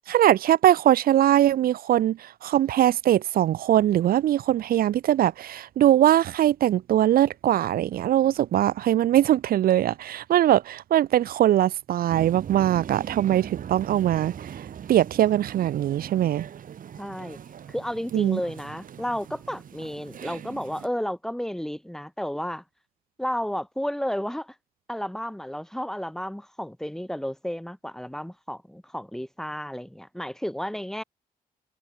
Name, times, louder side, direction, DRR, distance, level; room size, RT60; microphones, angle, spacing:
voice 1, 0.1-14.6 14.9-16.4 18.1-18.4, right 12 dB, 85° right, 1.2 m, -21 dB
sound 1, 12.1-20.9, right 9 dB, 65° right, 5.4 m, -40 dB
voice 2, 17.0-17.4 17.7-22.6 23.2-24.5 24.9-31.0, equal, 5° left, 5.6 m, -32 dB
cardioid pair, 105°, 15 cm